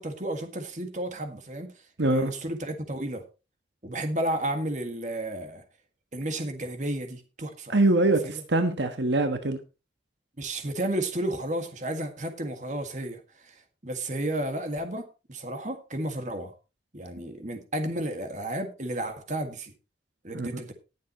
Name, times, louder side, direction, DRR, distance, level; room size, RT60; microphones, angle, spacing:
voice 1, 0.0-1.7 2.0-3.2 3.8-5.6 6.1-7.7 8.2-8.3 10.4-13.5 13.8-16.5 16.9-19.7 20.2-20.7, right 1 dB, 40° right, 1.9 m, -32 dB
voice 2, 2.0-2.3 7.7-9.6 20.3-20.6, right 2 dB, 75° right, 1.3 m, -24 dB
19.5 x 7.4 x 3.0 m
head